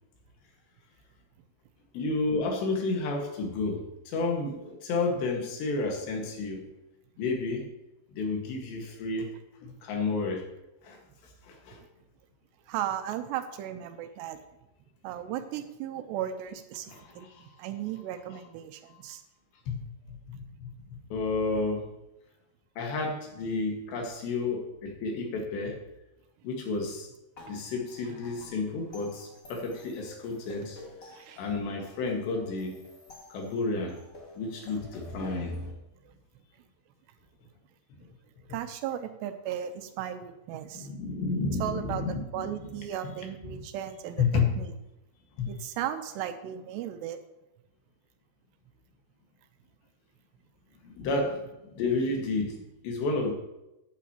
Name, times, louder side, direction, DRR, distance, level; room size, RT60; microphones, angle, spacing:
voice 1, 1.9-6.7 7.2-7.7 8.1-9.3 9.6-10.5 10.8-11.8 16.9-17.6 19.7-21.9 22.8-25.8 26.4-27.1 27.5-30.8 31.1-32.8 33.3-34.0 34.4-35.7 38.0-38.1 40.7-42.7 43.0-43.1 43.4-43.6 44.2-44.5 45.4-45.6 50.8-53.3, left 3 dB, 85° left, 2 dB, 4.0 m, -31 dB
voice 2, 12.7-14.4 15.0-17.3 17.6-19.2 31.1-31.4 38.5-40.9 41.6-42.1 42.3-44.2 44.6-44.7 45.5-47.2, right 10 dB, 85° right, 8 dB, 3.0 m, -35 dB
sound 1, 27.4-35.7, left 2 dB, 35° left, 1.3 m, -50 dB
14.5 x 10.0 x 3.0 m, 0.94 s
omnidirectional pair, 4.8 m